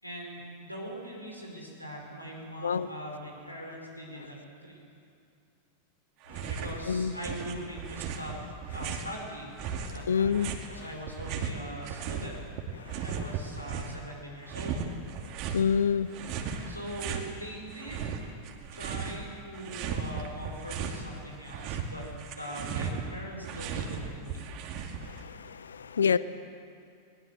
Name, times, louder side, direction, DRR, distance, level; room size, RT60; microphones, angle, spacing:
voice 1, 0.0-4.8 6.5-8.4 8.7-10.4 10.7-12.4 13.0-14.9 16.7-18.2 18.7-24.4 26.0-26.2, equal, 90° left, -1 dB, 5.2 m, -41 dB
sound 1, 6.2-6.8 7.1-9.2 9.6-12.3 12.6-14.0 14.5-15.7 16.1-17.3 17.7-19.2 19.5-21.0 21.3-25.2, right 6 dB, 40° right, 2.4 m, -36 dB
voice 2, 9.8-10.5 12.9-13.0 15.5-16.1 25.0-26.2, left 6 dB, 70° left, 17 dB, 0.6 m, -27 dB
22.0 x 20.5 x 7.7 m, 2.4 s
figure-of-eight pair, 90°, 0 cm